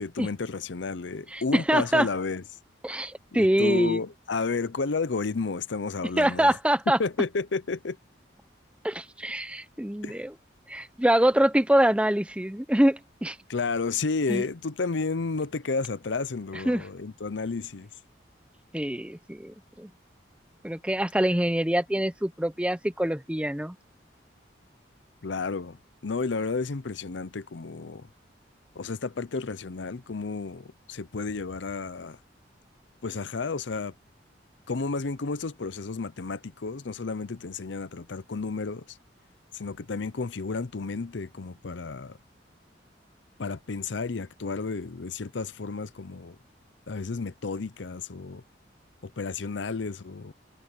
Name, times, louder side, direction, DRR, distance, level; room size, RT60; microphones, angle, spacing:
voice 1, 0.0-2.4 3.3-6.6 7.0-8.0 10.0-10.2 13.5-17.9 25.2-25.8 26.0-28.1 28.8-32.2 33.0-33.9 34.7-39.0 39.5-42.2 43.4-46.4 46.9-48.4 49.0-50.3, left 4 dB, 80° left, 0.7 m, -32 dB
voice 2, 1.3-2.1 2.8-4.0 6.2-7.0 8.8-10.3 10.7-13.4 14.3-14.4 16.7-16.8 18.7-19.9 20.6-23.7, right 1 dB, 5° right, 0.7 m, -25 dB
head